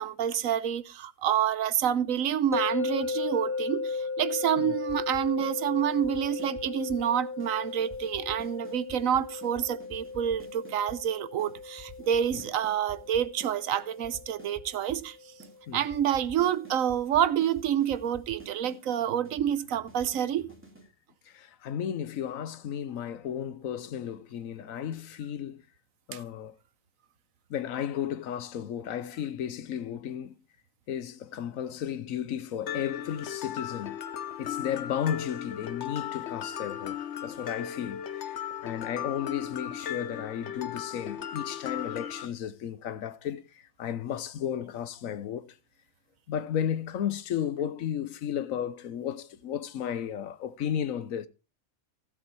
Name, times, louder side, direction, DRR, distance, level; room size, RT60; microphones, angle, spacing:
voice 1, 0.0-15.2 15.7-20.5 26.1-26.2, right 9 dB, 80° right, 1.2 m, -28 dB
sound 1, 2.5-15.6, left 4 dB, 10° left, 1.0 m, -36 dB
sound 2, 4.9-5.5 5.8-7.1 7.4-7.5 7.8-11.0 11.4-11.5 11.8-13.5 13.8-15.1 15.4-15.5 15.8-20.9, equal, 10° right, 2.3 m, -49 dB
voice 2, 21.3-25.6 26.1-26.6 27.5-30.3 30.9-33.9 34.4-45.5 46.3-51.3, left 9 dB, 85° left, 1.2 m, -34 dB
Mallet percussion, 32.7-42.3, left 9 dB, 60° left, 1.1 m, -36 dB
16.0 x 7.4 x 4.6 m
omnidirectional pair, 1.4 m